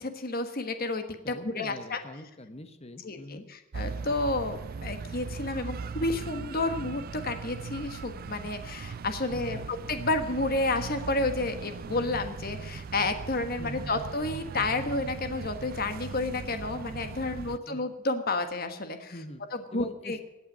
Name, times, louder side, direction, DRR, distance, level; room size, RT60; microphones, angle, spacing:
voice 1, 0.0-2.0 3.0-19.1 19.5-20.2, left 2 dB, 45° left, 8 dB, 1.4 m, -31 dB
voice 2, 1.2-3.5 9.3-9.7 13.6-13.9 17.2-17.8 19.1-19.4 19.7-20.2, left 1 dB, 30° left, 9 dB, 1.2 m, -44 dB
sound 1, 3.7-17.6, right 5 dB, 45° right, 0.4 m, -39 dB
17.0 x 9.2 x 6.3 m, 1.1 s
head